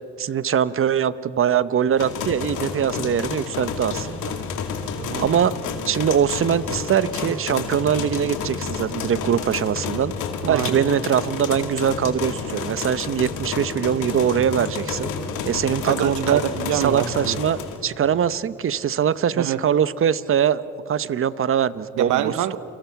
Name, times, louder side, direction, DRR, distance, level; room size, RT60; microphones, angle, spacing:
voice 1, 0.2-4.3 5.2-5.5 5.9-10.1 10.4-15.1 15.4-16.4 16.7-22.3, right 8 dB, 45° right, 16 dB, 0.8 m, -22 dB
sound 1, 2.0-17.8, left 5 dB, 85° left, 2.5 m, -30 dB
voice 2, 4.8-5.3 10.5-10.9 15.8-17.4 19.4-19.6 22.0-22.6, right 11 dB, 80° right, 13 dB, 0.9 m, -25 dB
29.5 x 24.5 x 5.8 m, 2.9 s
cardioid pair, 90°, 30 cm